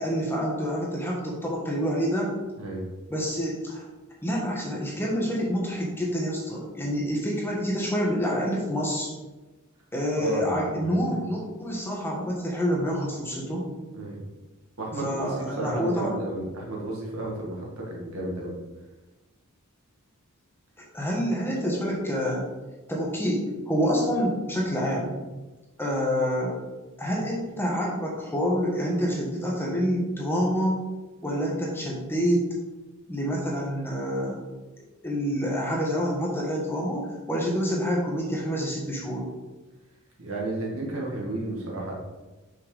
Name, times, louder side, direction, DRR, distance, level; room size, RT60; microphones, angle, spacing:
voice 1, 0.0-2.3 3.1-3.8 4.2-9.1 9.9-13.7 15.0-16.2 20.9-22.5 22.9-25.2 25.8-26.6 27.0-30.8 31.2-32.5 33.1-34.4 35.0-39.3, equal, 10° left, -3 dB, 1.3 m, -27 dB
voice 2, 2.6-2.9 10.1-11.2 13.9-14.2 14.8-18.6 40.2-41.9, right 2 dB, 70° right, -3 dB, 1.9 m, -33 dB
6.1 x 5.8 x 3.4 m, 1.1 s
head